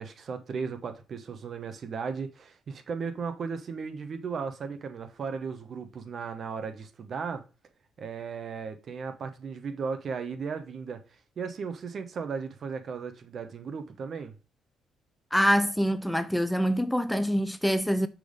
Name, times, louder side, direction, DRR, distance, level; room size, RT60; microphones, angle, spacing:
voice 1, 0.0-7.4 8.0-11.0 11.4-14.3, right 5 dB, 55° right, 0.9 m, -36 dB
voice 2, 15.3-18.1, equal, 5° left, 0.4 m, -25 dB
6.1 x 3.5 x 5.0 m
cardioid pair, 90°, 0 cm